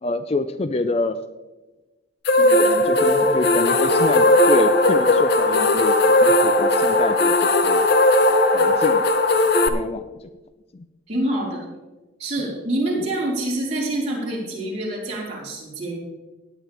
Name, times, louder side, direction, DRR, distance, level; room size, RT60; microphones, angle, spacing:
voice 1, 0.0-1.2 2.6-7.9 8.5-9.0 9.3-10.3 10.7-10.9, left 2 dB, 30° left, 10 dB, 0.4 m, -27 dB
sound 1, 2.3-9.7, left 2 dB, 50° left, 0.8 m, -17 dB
voice 2, 2.3-3.0 9.5-9.8 11.1-11.7 12.2-16.0, right 1 dB, 35° right, -6 dB, 4.4 m, -27 dB
17.0 x 9.2 x 3.3 m, 1.1 s
head